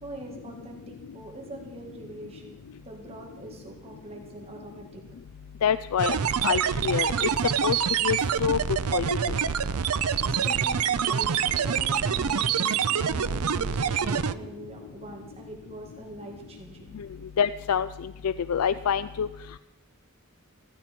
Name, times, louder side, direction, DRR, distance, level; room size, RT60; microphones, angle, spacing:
voice 1, 0.0-5.0 10.0-17.2, right 1 dB, 30° right, 0 dB, 1.9 m, -43 dB
voice 2, 5.6-6.2 6.4-7.3 7.6-7.8 8.0-8.6 8.9-9.2 17.4-17.9 18.2-19.3, left 7 dB, 90° left, 14 dB, 0.4 m, -26 dB
sound 1, 6.0-14.3, right 7 dB, 85° right, 0.6 m, -26 dB
15.5 x 15.0 x 4.5 m, 1.1 s
head